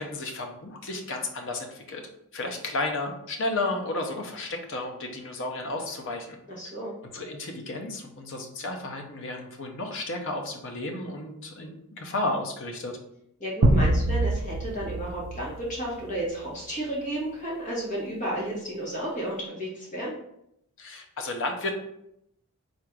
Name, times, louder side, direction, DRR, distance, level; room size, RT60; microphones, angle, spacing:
voice 1, 0.0-2.0 2.3-6.4 7.0-13.0 14.2-14.3 20.8-21.7, left 2 dB, 60° left, 3 dB, 0.8 m, -33 dB
voice 2, 6.5-6.9 13.4-20.2, right 1 dB, 35° left, -5 dB, 1.5 m, -32 dB
sound 1, 13.6-16.4, right 2 dB, 65° right, 0.5 m, -25 dB
3.9 x 2.5 x 4.6 m, 0.77 s
head